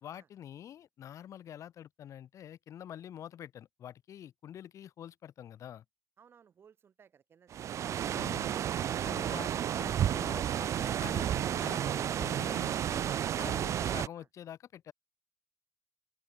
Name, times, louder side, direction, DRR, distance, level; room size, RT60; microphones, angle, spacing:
voice 1, 0.0-5.8 8.1-8.5 9.0-9.5 9.8-13.1 13.4-14.9, left 10 dB, 85° left, 3.0 m, -47 dB
voice 2, 6.2-8.5 14.1-14.3, right 7 dB, 50° right, 7.3 m, -62 dB
sound 1, 7.5-14.1, right 10 dB, 75° right, 0.7 m, -32 dB
open air
wide cardioid pair, 170°, 5 cm